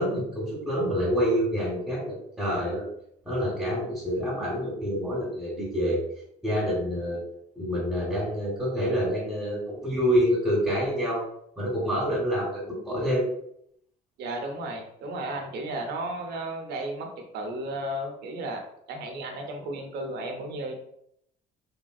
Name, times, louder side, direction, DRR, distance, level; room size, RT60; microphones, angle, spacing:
voice 1, 0.0-2.8 3.2-6.0 6.4-7.2 7.5-11.2 11.6-13.3, equal, 5° right, -8 dB, 1.3 m, -27 dB
voice 2, 14.2-18.6 18.9-20.8, right 1 dB, 80° right, 3 dB, 0.8 m, -34 dB
3.6 x 2.6 x 2.3 m, 0.73 s
cardioid pair, 110°, 17 cm